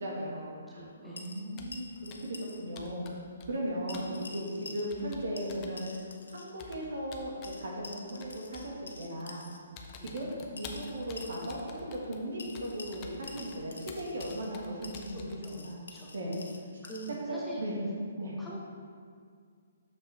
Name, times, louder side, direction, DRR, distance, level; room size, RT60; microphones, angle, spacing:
voice 1, 0.0-3.1 3.5-5.9 6.3-7.3 7.6-9.5 10.0-15.3 15.5-15.8 16.1-16.4 17.3-17.8 18.2-18.4, equal, 75° right, -3 dB, 1.8 m, -37 dB
voice 2, 0.7-1.3 4.6-4.7 10.0-10.2 15.1-16.1 16.8-17.6 18.2-18.6, right 2 dB, 5° left, -7 dB, 1.0 m, -45 dB
sound 1, 1.2-2.6 2.9-3.0 3.9-5.1 5.4-6.5 7.4-9.6 10.6-11.6 12.4-14.5 14.8-17.2, left 3 dB, 85° left, 0.8 m, -48 dB
Computer keyboard, 1.6-1.8 2.1-2.4 2.8-3.7 3.9-4.1 4.9-5.8 6.6-7.6 8.2-8.8 9.2-9.4 9.8-15.4, left 4 dB, 30° left, 0.7 m, -49 dB
6.7 x 6.1 x 3.5 m, 2.1 s
hypercardioid pair, 150°, 0 cm